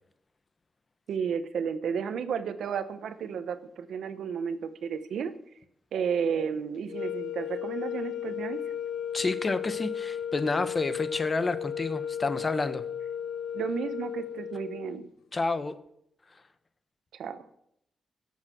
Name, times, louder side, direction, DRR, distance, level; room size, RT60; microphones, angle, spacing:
voice 1, 1.1-5.3 5.9-8.6 13.5-15.1 17.1-17.4, right 7 dB, 85° right, 11 dB, 1.0 m, -32 dB
sound 1, 6.9-15.1, left 8 dB, 85° left, 0.7 m, -35 dB
voice 2, 9.1-12.8 15.3-15.8, left 3 dB, 35° left, 12 dB, 1.0 m, -29 dB
16.0 x 7.4 x 6.1 m, 0.74 s
cardioid pair, 100°, 0 cm